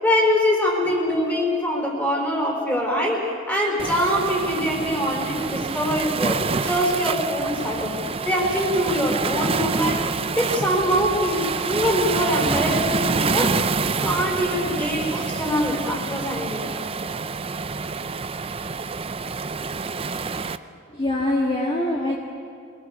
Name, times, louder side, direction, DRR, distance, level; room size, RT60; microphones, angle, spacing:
voice 1, 0.0-8.0 8.2-10.0 10.4-13.6 14.0-16.7, equal, 10° left, 0 dB, 4.4 m, -23 dB
Waves surf, 3.8-20.6, right 4 dB, 30° right, 0.5 m, -27 dB
voice 2, 20.9-22.2, left 1 dB, 30° left, -2 dB, 1.7 m, -24 dB
24.0 x 19.5 x 7.2 m, 2.5 s
head